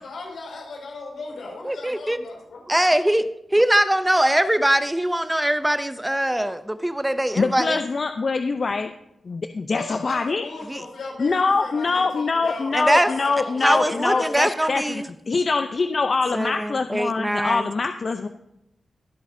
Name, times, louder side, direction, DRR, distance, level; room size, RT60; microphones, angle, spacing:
voice 1, 0.0-2.6 9.7-14.3, left 3 dB, 80° left, -1 dB, 5.3 m, -36 dB
voice 2, 1.6-2.2 2.7-7.8 10.7-10.8 12.7-13.1 13.6-15.1 16.3-17.7, right 1 dB, 10° right, 11 dB, 0.5 m, -22 dB
voice 3, 7.4-8.9 9.3-10.5 11.2-18.3, left 4 dB, 45° left, 7 dB, 0.5 m, -24 dB
23.0 x 8.2 x 2.7 m, 0.84 s
wide cardioid pair, 105°, 0 cm